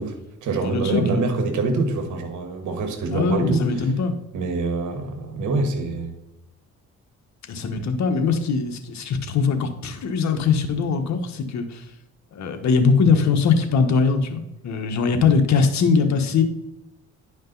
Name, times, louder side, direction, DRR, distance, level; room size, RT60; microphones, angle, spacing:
voice 1, 0.0-3.9 4.3-6.1, right 3 dB, 75° right, 7 dB, 1.6 m, -25 dB
voice 2, 0.6-1.3 3.1-4.2 7.5-11.8 12.3-16.4, left 5 dB, 65° left, 6 dB, 1.3 m, -21 dB
10.5 x 5.2 x 4.0 m, 0.90 s
cardioid pair, 90°, 30 cm